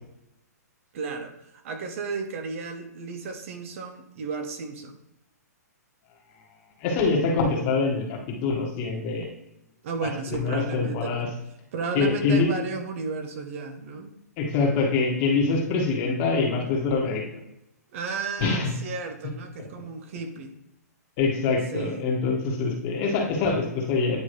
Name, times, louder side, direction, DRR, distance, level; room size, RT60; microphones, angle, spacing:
voice 1, 0.9-5.0 9.8-11.3 11.7-14.1 17.9-20.5 21.7-22.1, right 4 dB, 50° right, 7 dB, 0.9 m, -33 dB
voice 2, 6.8-9.3 10.0-11.3 12.0-12.5 14.4-17.2 18.4-18.7 21.2-24.2, left 4 dB, 35° left, 0 dB, 1.6 m, -24 dB
9.7 x 3.7 x 3.2 m, 0.81 s
hypercardioid pair, 145°, 9 cm